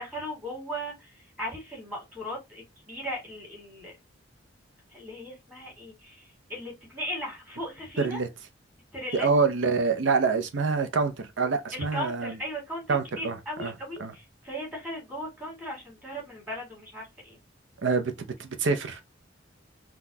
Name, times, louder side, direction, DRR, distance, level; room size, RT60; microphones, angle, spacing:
voice 1, 0.0-3.9 4.9-8.2 8.9-9.3 11.7-17.4, equal, 10° right, 1.9 m, -37 dB
voice 2, 8.0-8.3 9.1-12.4 12.9-13.7 14.0-14.1 17.8-18.1 18.4-19.0, right 4 dB, 70° right, 0.6 m, -26 dB
3.9 x 2.3 x 2.7 m
head